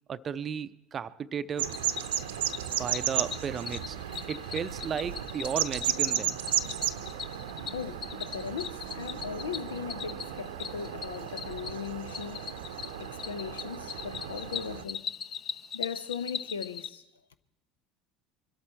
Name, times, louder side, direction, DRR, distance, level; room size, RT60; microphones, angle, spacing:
voice 1, 0.1-1.8 2.7-4.0 4.3-6.4, right 7 dB, 30° right, 0.5 m, -34 dB
sound 1, 1.6-14.8, right 11 dB, 65° right, 0.7 m, -34 dB
Cricket, 1.7-16.9, left 7 dB, 35° left, 0.7 m, -41 dB
voice 2, 7.7-12.5 13.0-15.1 15.7-17.0, left 7 dB, 75° left, 0.6 m, -38 dB
23.5 x 13.0 x 4.4 m
figure-of-eight pair, 70°, 0 cm